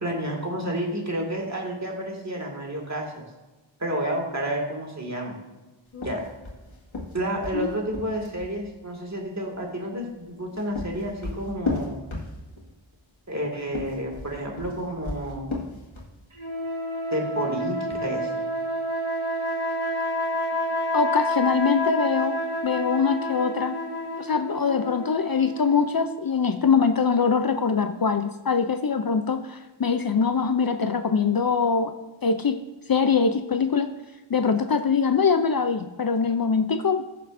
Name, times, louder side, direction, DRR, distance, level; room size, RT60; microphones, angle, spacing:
voice 1, 0.0-3.3 3.8-5.3 6.0-6.2 7.1-12.0 13.3-15.6 17.1-18.4, right 1 dB, 35° right, 0 dB, 2.2 m, -30 dB
sound 1, 5.9-8.6 10.3-12.7 13.6-16.2, left 3 dB, 80° left, 2.1 m, -34 dB
sound 2, 16.4-26.1, equal, 75° right, 2.1 m, -29 dB
voice 2, 20.9-23.8 24.2-31.9 32.2-32.6 32.9-33.9 34.3-37.0, left 5 dB, 50° left, 8 dB, 0.6 m, -23 dB
15.0 x 6.6 x 2.6 m, 1.1 s
wide cardioid pair, 50°, 48 cm